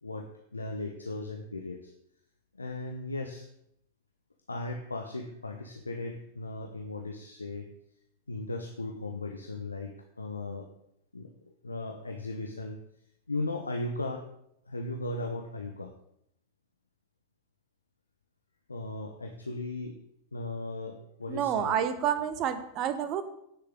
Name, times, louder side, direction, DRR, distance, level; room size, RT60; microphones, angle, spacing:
voice 1, 0.0-1.9 2.5-3.5 4.5-7.7 8.3-10.7 11.1-11.3 11.6-12.8 13.3-14.3 14.7-15.9 18.7-19.9 20.3-21.7, left 2 dB, 80° left, 4 dB, 0.8 m, -37 dB
voice 2, 21.3-23.2, right 9 dB, 35° right, 11 dB, 1.1 m, -29 dB
16.5 x 6.6 x 3.7 m, 0.75 s
figure-of-eight pair, 90°, 0 cm